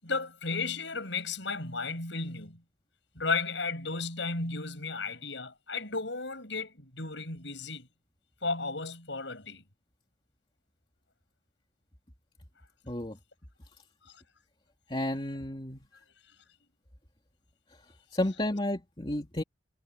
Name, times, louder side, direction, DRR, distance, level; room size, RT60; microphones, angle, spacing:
voice 1, 0.0-2.6 3.2-7.9 8.4-9.6 14.1-14.2, left 4 dB, 70° left, 7.9 m, -34 dB
voice 2, 12.9-13.2 14.9-15.8 18.1-19.4, left 1 dB, 25° left, 2.8 m, -31 dB
head